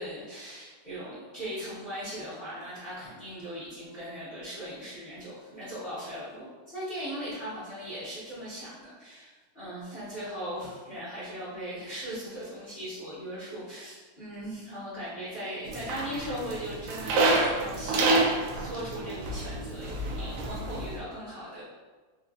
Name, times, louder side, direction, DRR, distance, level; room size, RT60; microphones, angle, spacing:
voice 1, 0.0-21.6, equal, 30° left, -14 dB, 0.9 m, -39 dB
sound 1, 15.7-21.0, right 2 dB, 80° right, 1.5 m, -28 dB
4.6 x 2.6 x 2.4 m, 1.3 s
omnidirectional pair, 3.3 m